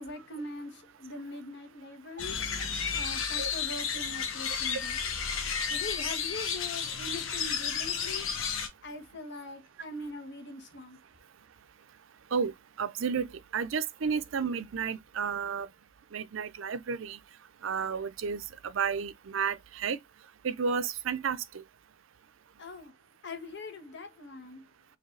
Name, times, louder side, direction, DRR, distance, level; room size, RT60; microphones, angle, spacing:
voice 1, 0.0-2.4 2.9-5.0 5.7-8.3 8.8-11.0 22.6-22.9 23.2-24.6, left 2 dB, 60° left, 1.2 m, -42 dB
sound 1, 2.2-8.7, left 6 dB, 85° left, 1.1 m, -32 dB
voice 2, 12.3-15.7 16.1-17.2 17.6-20.0 20.4-21.6, right 6 dB, 70° right, 0.5 m, -32 dB
4.8 x 2.8 x 3.2 m
head